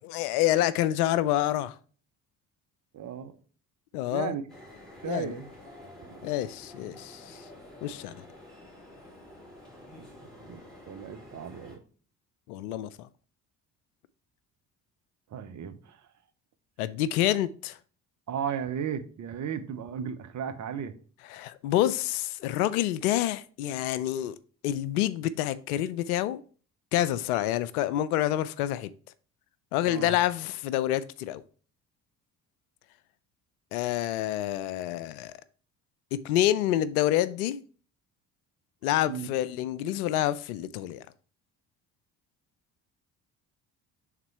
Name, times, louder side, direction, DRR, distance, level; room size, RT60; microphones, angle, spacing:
voice 1, 0.0-1.8 3.9-4.4 5.0-5.4 6.2-7.4 7.8-8.2 12.5-13.1 16.8-17.8 21.3-24.4 24.6-26.4 26.9-28.9 29.7-31.4 33.7-35.3 36.1-37.6 38.8-41.1, left 13 dB, 70° left, 0.5 m, -28 dB
voice 2, 2.9-3.3 4.1-4.4 5.0-5.5 6.0-6.3 10.5-10.6 10.9-11.8 15.3-16.0 18.3-20.9 29.9-30.1 39.1-39.3, right 8 dB, 40° right, 0.8 m, -35 dB
sound 1, 4.5-11.8, left 1 dB, ahead, 3.0 m, -49 dB
5.8 x 3.7 x 4.4 m
figure-of-eight pair, 50°, 46 cm